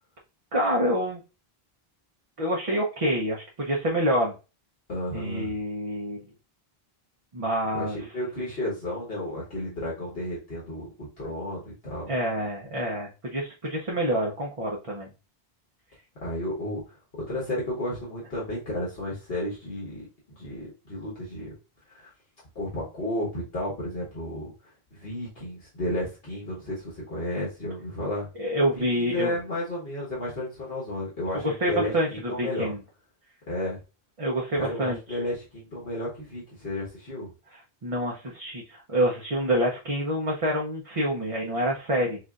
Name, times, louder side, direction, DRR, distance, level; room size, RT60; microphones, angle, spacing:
voice 1, 0.5-1.2 2.4-4.3 5.1-6.3 7.3-8.0 12.1-15.1 28.4-29.3 31.4-32.8 34.2-35.2 37.5-42.2, equal, 35° right, -2 dB, 0.7 m, -27 dB
voice 2, 4.9-5.5 7.7-12.1 16.2-20.0 20.4-21.5 21.9-22.1 22.5-28.3 28.7-32.7 33.5-33.8 34.5-37.3, left 1 dB, 65° left, -5 dB, 1.5 m, -33 dB
6.3 x 2.5 x 2.4 m, 0.32 s
omnidirectional pair, 1.0 m